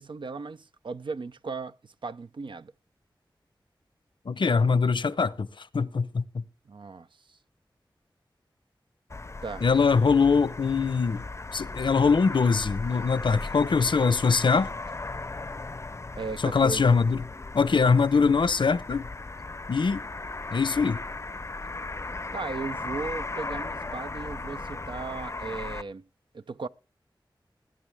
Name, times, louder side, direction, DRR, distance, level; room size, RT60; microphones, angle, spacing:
voice 1, 0.0-2.7 6.7-7.4 9.4-9.7 16.2-16.9 22.3-26.0 26.3-26.7, right 4 dB, 75° right, 0.6 m, -37 dB
voice 2, 4.3-5.5 5.7-6.4 9.6-11.2 11.5-14.7 16.4-17.3 17.5-19.1 19.7-20.0 20.5-21.0, left 5 dB, 75° left, 0.7 m, -22 dB
sound 1, 9.1-25.8, left 3 dB, 35° left, 0.6 m, -37 dB
20.5 x 9.7 x 3.4 m
wide cardioid pair, 85°, 8 cm